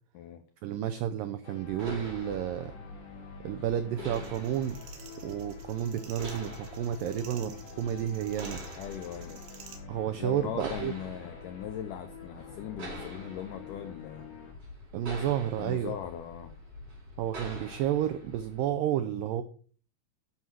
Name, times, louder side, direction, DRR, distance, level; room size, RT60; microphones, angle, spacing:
voice 1, 0.6-2.7 3.4-4.8 5.2-8.6 9.9-10.9 14.9-15.9 17.2-19.4, right 10 dB, 85° right, 11 dB, 1.9 m, -31 dB
sound 1, 1.4-14.5, left 6 dB, 50° left, 3.3 m, -48 dB
sound 2, 1.6-18.7, equal, 30° right, 4.3 m, -45 dB
sound 3, 4.1-9.8, right 7 dB, 70° right, 3.4 m, -51 dB
voice 2, 8.8-9.4 10.2-14.3 15.6-16.5, left 10 dB, 90° left, 8 dB, 1.8 m, -39 dB
11.5 x 5.7 x 6.2 m, 0.42 s
omnidirectional pair, 4.8 m